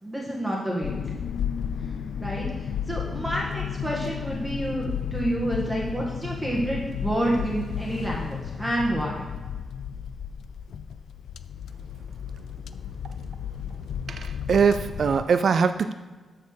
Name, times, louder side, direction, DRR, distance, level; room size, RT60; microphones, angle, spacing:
voice 1, 0.0-1.2 2.2-9.2, right 1 dB, 5° right, -3 dB, 1.6 m, -29 dB
sound 1, 0.8-15.2, left 8 dB, 85° left, 0.4 m, -33 dB
voice 2, 14.1-15.9, right 6 dB, 55° right, 10 dB, 0.4 m, -22 dB
12.0 x 4.3 x 6.5 m, 1.3 s
wide cardioid pair, 160°, 0 cm